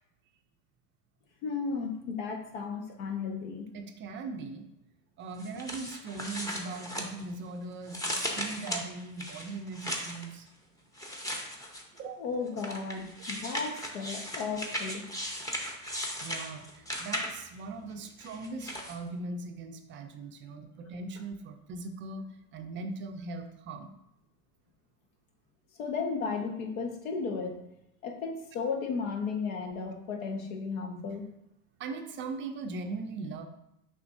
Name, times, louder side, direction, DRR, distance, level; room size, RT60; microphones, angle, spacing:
voice 1, 1.4-3.7 12.2-15.0 25.8-27.6 28.0-31.2, left 5 dB, 75° left, 3 dB, 1.3 m, -34 dB
voice 2, 3.7-4.7 5.2-10.5 12.0-12.2 16.2-23.9 31.8-33.5, right 3 dB, 30° right, 6 dB, 0.4 m, -40 dB
sound 1, 5.4-7.5 7.9-10.3 11.0-12.0 12.6-17.6 18.2-19.0, equal, 10° left, 0.7 m, -37 dB
6.7 x 5.5 x 2.6 m, 0.82 s
supercardioid pair, 125°, 41 cm